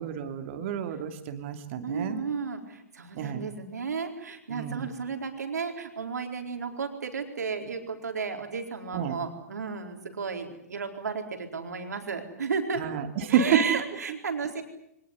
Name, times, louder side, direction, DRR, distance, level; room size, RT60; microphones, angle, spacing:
voice 1, 0.0-2.2 3.1-3.4 4.5-4.9 8.9-9.1 12.8-13.8, right 8 dB, 50° right, 8 dB, 2.8 m, -29 dB
voice 2, 1.8-12.8 13.2-14.6, right 5 dB, 80° right, 5 dB, 4.4 m, -33 dB
24.0 x 20.0 x 9.6 m, 0.78 s
hypercardioid pair, 120°, 9 cm